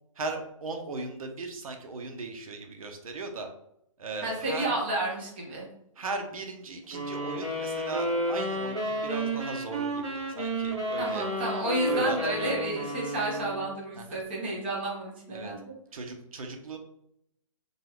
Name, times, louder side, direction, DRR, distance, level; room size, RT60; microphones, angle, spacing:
voice 1, 0.1-3.5 4.0-4.7 5.9-11.3 11.8-12.6 14.0-14.2 15.3-15.5 15.9-16.8, right 3 dB, 85° right, 4 dB, 0.7 m, -38 dB
voice 2, 4.2-5.7 11.0-15.6, right 2 dB, 20° right, -4 dB, 0.5 m, -31 dB
sound 1, 6.9-13.7, right 1 dB, 55° right, 1.2 m, -31 dB
2.4 x 2.2 x 3.3 m, 0.75 s
hypercardioid pair, 175°, 18 cm